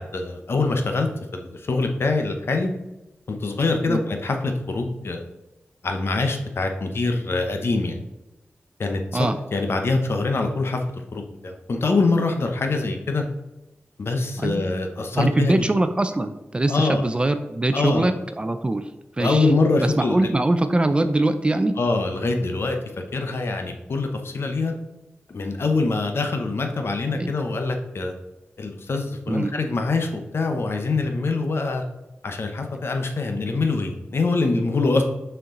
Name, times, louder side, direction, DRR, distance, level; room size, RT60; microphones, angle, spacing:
voice 1, 0.0-2.7 3.3-5.2 5.8-8.0 8.8-10.8 11.1-13.2 14.0-15.6 16.7-17.0 17.7-18.1 19.2-20.3 21.8-22.8 23.1-24.7 25.3-28.1 28.6-31.8 32.2-35.0, left 3 dB, 65° left, 4 dB, 0.9 m, -24 dB
voice 2, 14.4-14.7 15.1-18.8 19.2-19.5 20.0-21.8 27.2-27.3 29.3-29.5, right 2 dB, 25° right, 9 dB, 0.5 m, -22 dB
6.6 x 4.5 x 3.8 m, 1.0 s
wide cardioid pair, 115°, 4 cm